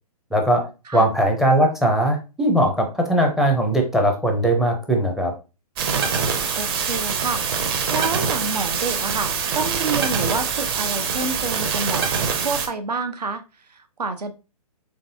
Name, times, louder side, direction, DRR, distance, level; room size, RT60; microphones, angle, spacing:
voice 1, 0.3-0.6 0.9-5.3, right 1 dB, ahead, 3 dB, 0.5 m, -19 dB
sound 1, 5.8-12.7, right 6 dB, 35° right, 0.8 m, -24 dB
voice 2, 6.5-7.4 7.9-12.1 12.4-14.3, right 4 dB, 85° right, 8 dB, 0.7 m, -28 dB
3.9 x 3.4 x 2.6 m, 0.30 s
hypercardioid pair, 135°, 20 cm